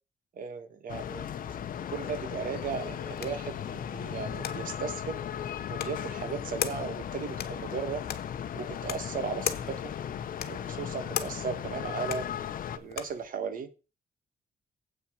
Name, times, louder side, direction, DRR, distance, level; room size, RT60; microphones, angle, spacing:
voice 1, 0.4-1.3 1.9-5.2 5.7-8.0 8.5-9.9 10.5-12.3 12.8-13.7, right 6 dB, 60° right, 11 dB, 1.4 m, -36 dB
sound 1, 0.9-12.8, left 9 dB, 60° left, 0.9 m, -37 dB
sound 2, 2.5-13.3, left 10 dB, 90° left, 1.1 m, -40 dB
8.1 x 6.1 x 6.5 m, 0.32 s
wide cardioid pair, 175°, 16 cm